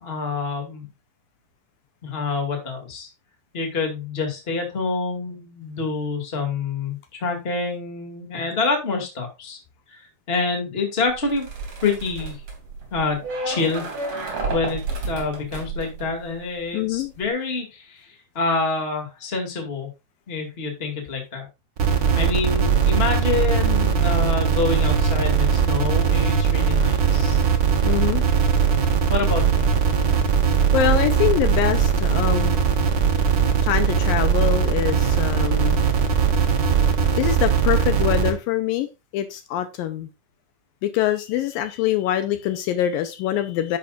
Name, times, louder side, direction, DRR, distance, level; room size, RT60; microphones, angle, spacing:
voice 1, 0.0-0.9 2.0-3.1 3.5-9.6 9.9-10.0 10.3-11.5 11.8-12.4 12.9-13.9 14.5-19.9 20.3-21.5 22.2-27.4 29.1-29.7, left 4 dB, 20° left, 1.9 m, -27 dB
sound 1, 11.1-16.6 16.9-17.3, right 3 dB, 40° right, 3.4 m, -31 dB
voice 2, 16.7-17.1 27.8-28.2 30.7-32.6 33.6-35.8 37.2-40.1 40.8-43.8, left 11 dB, 80° left, 2.3 m, -24 dB
sound 2, 21.8-38.3, right 6 dB, 75° right, 1.0 m, -20 dB
10.5 x 8.5 x 2.5 m
omnidirectional pair, 4.3 m